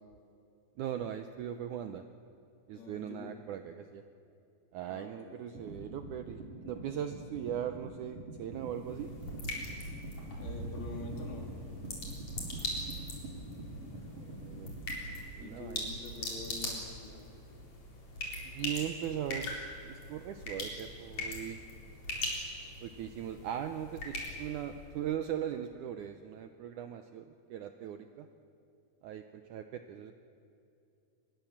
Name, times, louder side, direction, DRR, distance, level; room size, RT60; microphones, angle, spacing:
voice 1, 0.8-2.0 2.7-4.0 4.7-9.1 14.1-14.7 15.4-15.9 18.4-19.6 19.8-21.6 22.8-28.3 29.0-30.1, right 10 dB, 80° right, 8 dB, 1.8 m, -39 dB
voice 2, 2.7-3.3 4.9-5.7 10.3-11.5 15.4-17.2, left 3 dB, 75° left, 1 dB, 5.1 m, -46 dB
sound 1, 5.5-15.0, right 2 dB, 50° right, 4.8 m, -45 dB
sound 2, 8.5-24.9, left 1 dB, 45° left, 5.2 m, -41 dB
25.0 x 21.0 x 7.3 m, 2.7 s
omnidirectional pair, 4.5 m